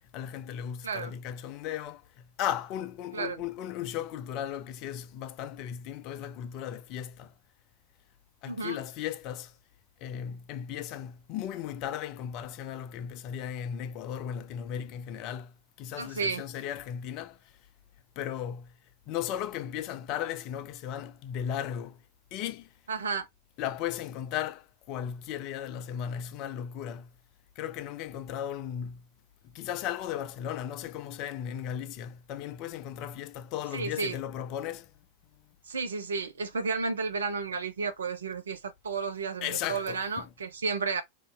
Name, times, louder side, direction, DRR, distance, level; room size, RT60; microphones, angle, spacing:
voice 1, 0.1-7.3 8.4-9.5 10.0-17.4 18.2-18.7 19.1-22.0 22.3-22.7 23.6-27.1 27.6-29.0 29.4-34.9 39.4-40.3, left 10 dB, 45° left, 0.5 m, -36 dB
voice 2, 0.8-1.1 3.1-3.4 8.4-8.8 16.0-16.4 22.9-23.3 33.7-34.2 35.7-41.0, right 4 dB, 70° right, 0.7 m, -32 dB
2.9 x 2.7 x 3.4 m
figure-of-eight pair, 90°, 0 cm